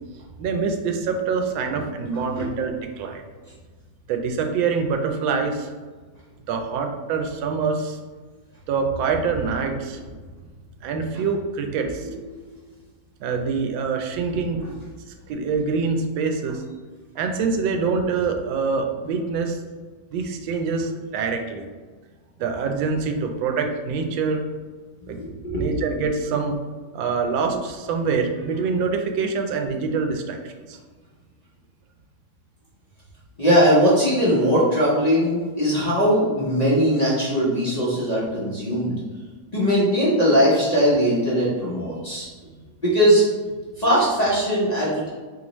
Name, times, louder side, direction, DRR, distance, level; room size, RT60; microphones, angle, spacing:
voice 1, 0.4-3.2 4.1-5.7 6.5-8.0 8.7-10.0 10.8-12.1 13.2-14.6 15.3-16.6 17.2-19.6 20.1-21.7 22.4-24.4 25.1-25.2 25.6-26.6 26.9-30.8, right 5 dB, 85° right, 4 dB, 1.3 m, -25 dB
voice 2, 25.0-25.7 33.4-39.0 39.5-42.3 42.8-43.3 43.8-45.1, equal, 55° left, -8 dB, 0.4 m, -20 dB
3.9 x 3.2 x 3.0 m, 1.4 s
omnidirectional pair, 2.0 m